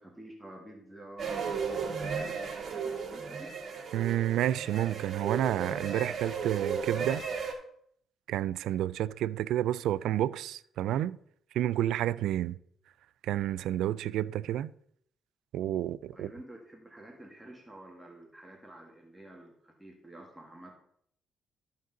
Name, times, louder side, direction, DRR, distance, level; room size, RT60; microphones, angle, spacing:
voice 1, 0.0-2.4 2.6-3.5 16.1-20.7, right 1 dB, 10° right, 1.7 m, -49 dB
sound 1, 1.2-7.5, right 5 dB, 50° right, 2.3 m, -35 dB
voice 2, 3.9-7.2 8.3-11.2 11.5-12.6 13.2-14.7 15.5-16.3, right 12 dB, 85° right, 0.3 m, -30 dB
13.5 x 5.2 x 3.9 m
cardioid pair, 90°, 0 cm